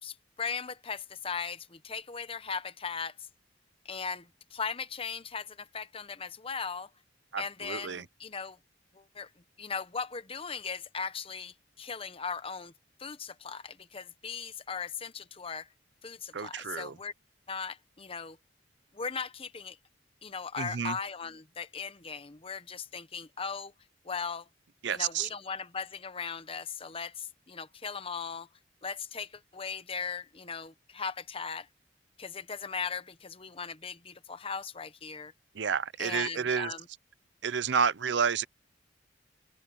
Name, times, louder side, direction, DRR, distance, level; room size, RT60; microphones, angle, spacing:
voice 1, 0.0-3.1 3.8-6.9 7.4-8.6 8.9-9.3 9.6-12.7 13.0-15.7 16.0-17.1 17.5-18.4 18.9-19.8 20.2-23.7 24.0-24.5 24.9-28.5 28.8-31.7 32.2-35.3 36.0-36.8, left 5 dB, 30° left, 0.9 m, -38 dB
voice 2, 7.3-8.0 16.3-17.0 20.6-21.0 24.8-25.3 35.5-36.7 37.4-38.4, right 6 dB, 70° right, 0.6 m, -30 dB
open air
head